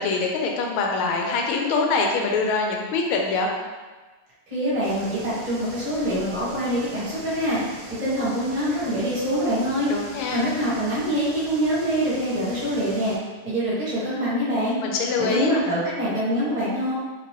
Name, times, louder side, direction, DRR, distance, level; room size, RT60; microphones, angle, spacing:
voice 1, 0.0-3.5 9.9-10.5 14.8-15.5, left 4 dB, 85° left, 1 dB, 1.4 m, -24 dB
voice 2, 4.5-7.6 8.0-9.9 10.3-13.1 13.4-14.8 15.2-16.9, equal, 25° right, -10 dB, 1.1 m, -25 dB
sound 1, 4.8-13.2, right 2 dB, 70° right, 1.1 m, -41 dB
3.2 x 3.0 x 3.0 m, 1.3 s
omnidirectional pair, 2.2 m